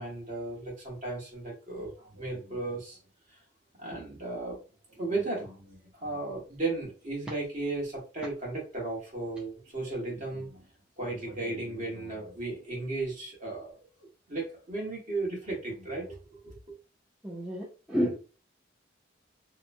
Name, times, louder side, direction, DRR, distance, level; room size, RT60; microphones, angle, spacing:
voice 1, 0.0-3.0 3.8-4.6 4.9-10.7 11.0-13.8 14.3-16.6, right 2 dB, 45° right, -2 dB, 1.2 m, -35 dB
voice 2, 17.2-18.2, equal, 5° right, -5 dB, 0.5 m, -30 dB
2.9 x 2.1 x 2.5 m, 0.34 s
head